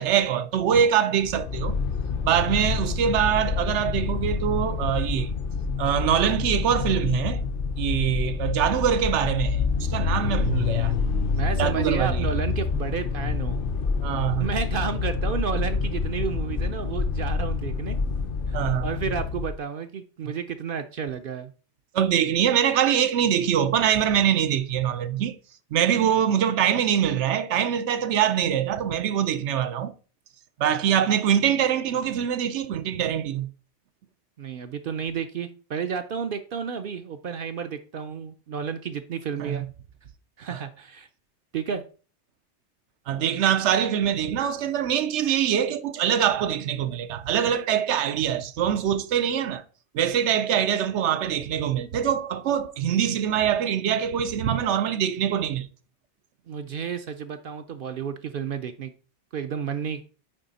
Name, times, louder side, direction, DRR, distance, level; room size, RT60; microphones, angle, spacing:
voice 1, 0.0-1.8 2.2-5.3 5.8-7.4 7.8-10.9 11.6-12.3 14.0-14.5 18.5-18.9 20.2-20.3 21.9-25.3 25.7-29.9 30.6-33.5 39.4-39.7 40.5-40.6 43.1-49.6 49.9-55.7, right 9 dB, 80° right, 0.9 m, -24 dB
sound 1, 1.2-19.6, left 5 dB, 55° left, 0.8 m, -27 dB
voice 2, 11.3-13.6 14.4-18.0 18.5-21.5 34.4-39.7 40.4-41.1 41.5-41.8 56.5-58.9 59.3-60.0, right 7 dB, 60° right, 0.7 m, -31 dB
9.1 x 3.3 x 4.1 m
omnidirectional pair, 1.2 m